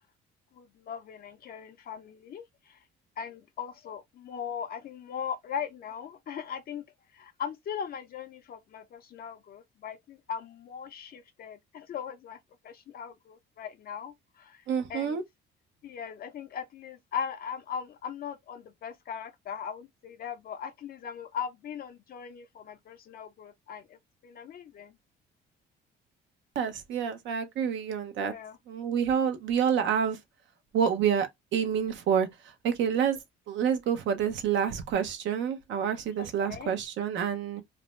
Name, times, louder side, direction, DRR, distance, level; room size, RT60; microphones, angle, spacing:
voice 1, 0.5-2.8 3.2-6.8 7.1-12.4 12.6-14.6 14.9-15.2 15.8-24.9 28.2-28.6 36.2-36.8, left 7 dB, 50° left, 0.5 m, -39 dB
voice 2, 14.7-15.2 26.5-28.3 28.7-30.2 30.7-32.3 32.6-33.2 33.5-37.6, right 8 dB, 70° right, 0.7 m, -28 dB
2.5 x 2.1 x 3.0 m
cardioid pair, 95°, 20 cm